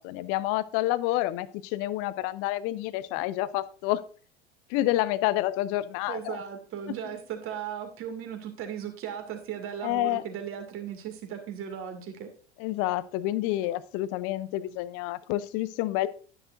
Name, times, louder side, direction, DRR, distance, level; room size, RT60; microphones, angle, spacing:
voice 1, 0.0-4.0 4.7-6.4 9.8-10.2 12.6-16.1, left 15 dB, 40° left, 17 dB, 0.6 m, -28 dB
voice 2, 6.1-12.3, right 8 dB, 40° right, 5 dB, 2.3 m, -37 dB
11.0 x 9.9 x 2.6 m, 0.39 s
figure-of-eight pair, 80°, 34 cm